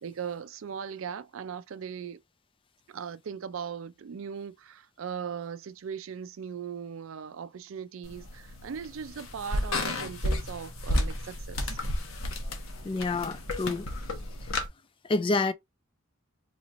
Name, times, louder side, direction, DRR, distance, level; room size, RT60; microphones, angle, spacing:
voice 1, 0.0-2.2 2.9-11.8, right 7 dB, 70° right, 0.4 m, -39 dB
sound 1, 8.0-14.7, left 1 dB, 80° left, 1.0 m, -32 dB
voice 2, 12.8-13.9 15.0-15.5, left 3 dB, 25° left, 0.3 m, -28 dB
4.0 x 3.0 x 2.5 m
head